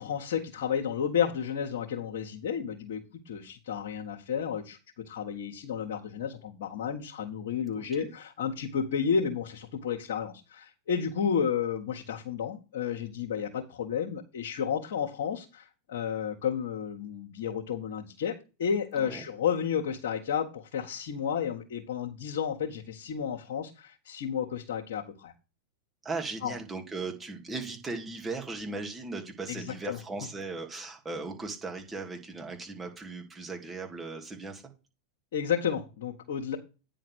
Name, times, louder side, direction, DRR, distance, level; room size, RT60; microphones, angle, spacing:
voice 1, 0.0-4.8 5.1-25.3 26.4-26.6 29.5-30.0 35.3-36.6, left 7 dB, 70° left, -2 dB, 1.6 m, -32 dB
voice 2, 7.7-8.1 19.0-19.2 26.0-34.6, right 3 dB, 15° right, 2 dB, 2.6 m, -38 dB
9.8 x 3.9 x 6.3 m, 0.31 s
hypercardioid pair, 100°, 0 cm